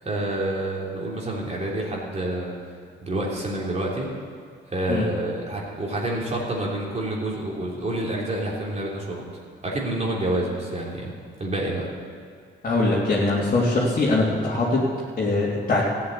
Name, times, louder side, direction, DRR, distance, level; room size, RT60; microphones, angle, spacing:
voice 1, 0.0-2.5 3.0-4.1 4.7-9.2 9.6-11.1 11.4-11.9, right 1 dB, 35° right, -3 dB, 3.4 m, -28 dB
voice 2, 12.6-14.8 15.2-15.8, left 2 dB, 45° left, -7 dB, 3.1 m, -22 dB
14.5 x 8.6 x 8.5 m, 2.2 s
cardioid pair, 90°, 20 cm